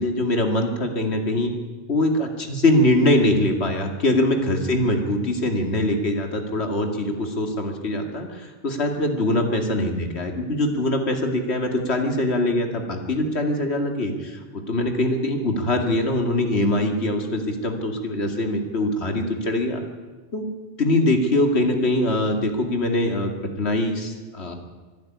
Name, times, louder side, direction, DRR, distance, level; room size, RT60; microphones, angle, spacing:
voice 1, 0.0-1.5 1.9-19.8 20.3-20.5 20.8-23.3 23.6-24.5, left 1 dB, 60° left, 4 dB, 2.6 m, -23 dB
24.0 x 11.5 x 9.5 m, 1.3 s
omnidirectional pair, 1.2 m